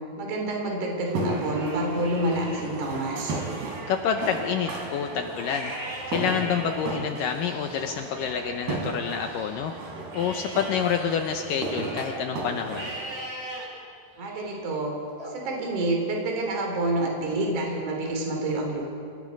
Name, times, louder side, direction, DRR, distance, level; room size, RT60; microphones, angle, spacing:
voice 1, 0.2-3.4 14.2-15.0 15.3-18.8, right 1 dB, 55° right, 1 dB, 4.4 m, -28 dB
Livestock farm animals working animals, 1.1-2.7 3.1-9.7 10.1-12.2 12.7-13.7 14.2-14.6 15.2-16.3, right 1 dB, 20° right, 4.0 m, -40 dB
sound 1, 1.1-13.2, right 3 dB, 90° right, 4.8 m, -35 dB
voice 2, 3.9-5.7 6.1-9.7 10.1-12.9, left 7 dB, 75° left, 5 dB, 2.2 m, -28 dB
29.0 x 17.0 x 5.3 m, 2.4 s
omnidirectional pair, 4.5 m